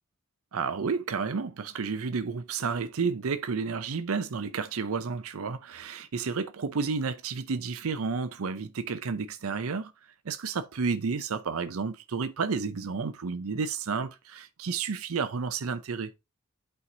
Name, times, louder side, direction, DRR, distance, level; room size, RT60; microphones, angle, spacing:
voice 1, 0.5-9.9 10.2-16.1, right 5 dB, 80° right, 0.6 m, -31 dB
8.5 x 4.6 x 2.8 m
head